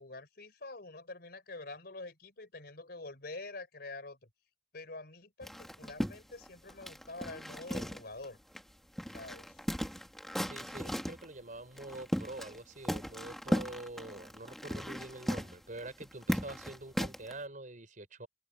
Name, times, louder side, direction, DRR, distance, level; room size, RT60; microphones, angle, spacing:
voice 1, 0.0-4.2 4.7-8.4 9.1-9.5, left 2 dB, 60° left, 4.0 m, -46 dB
sound 1, 5.4-8.3 8.5-8.6 9.0-11.2 11.8-12.6 12.8-17.3, equal, ahead, 2.1 m, -36 dB
voice 2, 10.4-18.3, right 2 dB, 50° right, 4.9 m, -45 dB
head